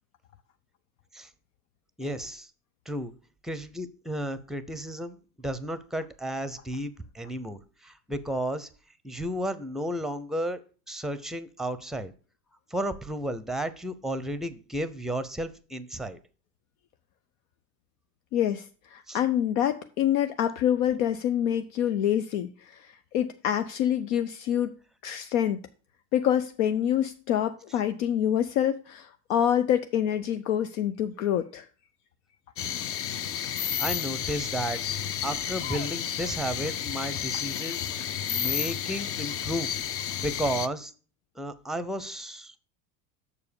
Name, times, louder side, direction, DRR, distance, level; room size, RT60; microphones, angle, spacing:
voice 1, 2.0-2.5 2.9-3.1 3.4-8.7 9.0-10.6 10.9-12.1 12.7-16.2 19.1-19.2 33.8-34.8 35.2-37.9 38.3-39.7 40.2-40.9 41.4-42.6, right 1 dB, ahead, 14 dB, 0.7 m, -33 dB
voice 2, 18.3-24.7 25.0-25.6 26.1-31.7, left 10 dB, 70° left, 8 dB, 0.7 m, -26 dB
sound 1, 32.6-40.7, left 9 dB, 35° left, 0.5 m, -31 dB
6.9 x 4.8 x 6.9 m, 0.39 s
hypercardioid pair, 95°, 42 cm